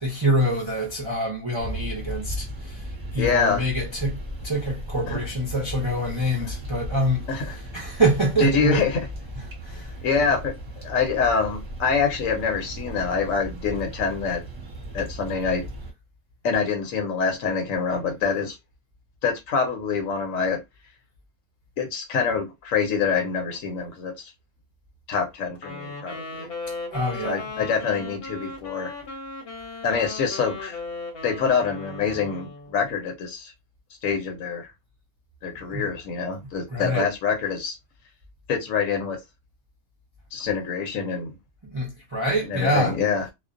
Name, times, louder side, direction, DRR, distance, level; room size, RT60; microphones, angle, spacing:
voice 1, 0.0-4.2 4.4-8.8 9.3-10.3 26.9-27.6 35.7-35.9 36.7-37.1 41.7-43.0, right 1 dB, 40° right, 0.4 m, -26 dB
sound 1, 1.6-15.9, equal, 20° right, 0.9 m, -36 dB
voice 2, 3.2-3.6 5.1-5.2 7.3-7.5 8.4-9.0 10.0-10.5 10.8-14.4 14.9-15.6 16.4-18.6 19.2-20.6 21.8-24.3 25.1-26.5 27.2-28.9 29.8-30.8 31.2-33.5 34.0-34.7 35.4-37.8 38.5-39.2 40.3-41.3 42.5-43.2, left 5 dB, 70° left, 1.1 m, -25 dB
Wind instrument woodwind instrument, 25.5-32.8, left 3 dB, 50° left, 0.9 m, -37 dB
2.4 x 2.1 x 2.5 m
omnidirectional pair, 1.5 m